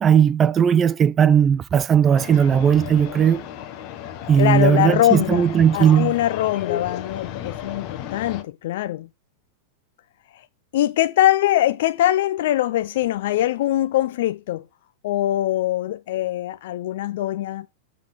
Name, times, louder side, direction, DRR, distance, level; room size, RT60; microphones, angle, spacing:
voice 1, 0.0-3.4 4.3-6.1, right 8 dB, 25° right, 0.3 m, -17 dB
sound 1, 2.1-8.4, left 10 dB, 40° left, 1.1 m, -34 dB
voice 2, 4.4-5.5 5.7-9.1 10.3-10.4 10.7-14.6 15.0-17.7, left 13 dB, 70° left, 0.4 m, -22 dB
7.3 x 3.8 x 6.5 m
supercardioid pair, 135°, 0 cm